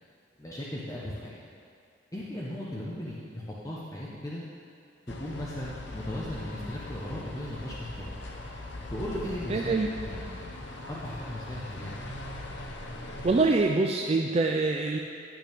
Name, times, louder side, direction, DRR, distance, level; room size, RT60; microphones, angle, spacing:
voice 1, 0.4-1.4 2.1-4.4 5.2-8.2 8.9-9.8 10.0-10.4 10.9-12.0, left 1 dB, 15° left, -6 dB, 0.9 m, -37 dB
sound 1, 5.1-13.5, left 2 dB, 60° left, 0.9 m, -40 dB
voice 2, 9.5-9.9 13.2-15.0, right 3 dB, 30° right, 2 dB, 0.3 m, -24 dB
10.5 x 9.0 x 3.5 m, 2.4 s
head